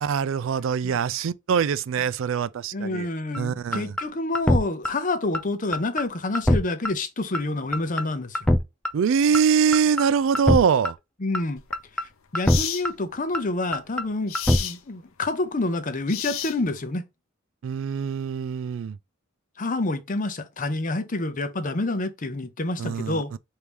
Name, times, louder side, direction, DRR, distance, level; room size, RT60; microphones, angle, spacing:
voice 1, 0.0-3.1 3.4-4.0 8.9-11.0 17.6-19.0 22.8-23.4, right 6 dB, 65° right, 0.3 m, -23 dB
voice 2, 2.7-8.4 11.2-11.6 12.3-14.3 14.6-17.0 19.6-23.3, left 2 dB, 40° left, 0.7 m, -28 dB
sound 1, 3.3-3.4 3.7-4.0 4.3-4.6 4.8-4.9 5.3-5.4 5.7-6.0 6.3-6.6 6.8-6.9 7.3-7.4 7.7-8.0 8.3-8.6 8.8-8.9 9.3-9.4 9.7-10.0 10.3-10.6 10.8-10.9 11.3-11.4 11.7-12.0 12.3-12.6 12.8-12.9 13.3-13.4 13.7-14.0 14.3-14.6, left 1 dB, 5° left, 0.4 m, -21 dB
sound 2, 11.6-11.7 12.5-12.9 14.3-14.8 16.1-16.8, left 10 dB, 80° left, 0.6 m, -31 dB
4.6 x 2.7 x 3.5 m
head